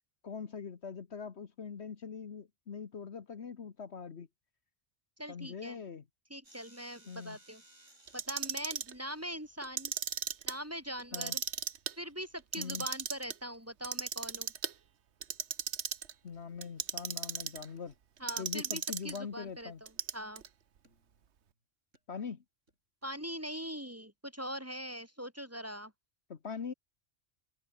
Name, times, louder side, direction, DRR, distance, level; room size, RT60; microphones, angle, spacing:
voice 1, 0.2-4.3 5.3-6.0 7.1-7.4 11.1-11.4 12.6-12.9 16.2-17.9 18.4-19.8 22.1-22.4 26.3-26.7, left 6 dB, 60° left, 1.5 m, -42 dB
voice 2, 5.2-5.8 6.3-7.6 8.1-9.9 10.5-11.4 12.0-14.5 18.2-20.4 23.0-25.9, equal, 10° right, 2.7 m, -42 dB
sound 1, 6.4-9.3 13.3-13.5 16.3-16.5 17.8-17.9 18.3-18.4 19.0-19.9 20.8-21.5 21.9-22.0 22.7-22.8 23.0-23.7, right 1 dB, 80° right, 8.1 m, -63 dB
Clock, 8.1-8.9 9.6-10.5 11.0-11.9 12.4-13.3 13.8-14.7 15.2-16.1 16.6-17.7 18.3-19.2 19.9-20.5, right 8 dB, 65° right, 1.3 m, -36 dB
omnidirectional pair, 1.3 m